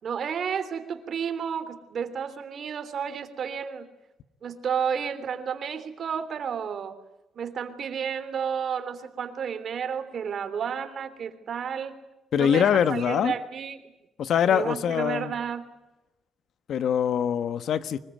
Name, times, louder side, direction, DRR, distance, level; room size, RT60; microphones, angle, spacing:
voice 1, 0.0-3.9 4.4-6.9 7.3-12.0 12.4-13.8 14.5-15.6, right 7 dB, 55° right, 10 dB, 3.3 m, -31 dB
voice 2, 12.3-13.3 14.2-15.3 16.7-18.0, left 8 dB, 70° left, 13 dB, 1.3 m, -23 dB
24.5 x 22.0 x 9.2 m, 0.99 s
cardioid pair, 90°, 0 cm